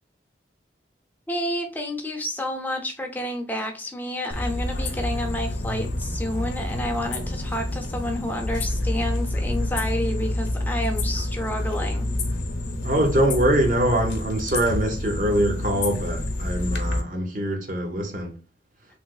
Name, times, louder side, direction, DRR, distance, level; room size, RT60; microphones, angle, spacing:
voice 1, 1.3-12.1, left 1 dB, 10° left, 0.5 m, -30 dB
sound 1, 4.3-17.0, left 1 dB, 70° left, 0.7 m, -28 dB
voice 2, 12.8-18.3, right 1 dB, 45° right, 0.8 m, -23 dB
3.3 x 2.9 x 2.3 m
head